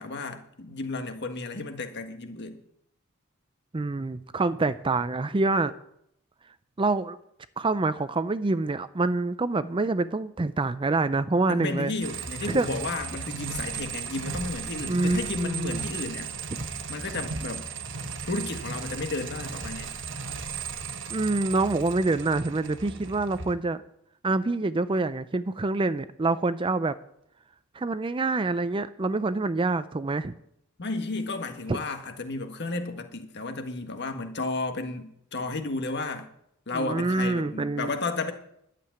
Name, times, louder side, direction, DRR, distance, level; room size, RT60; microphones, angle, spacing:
voice 1, 0.0-2.6 11.5-16.3 16.9-17.6 18.1-19.9 30.8-36.3 36.7-38.3, left 3 dB, 50° left, 1.6 m, -33 dB
voice 2, 3.7-5.7 6.8-7.2 7.6-11.9 12.5-12.7 14.9-15.8 21.1-23.8 24.2-27.0 27.7-30.3 31.7-31.8 36.7-37.9, right 3 dB, 25° right, 0.4 m, -26 dB
sound 1, 12.0-23.5, right 5 dB, 55° right, 1.3 m, -36 dB
11.5 x 7.6 x 9.2 m
head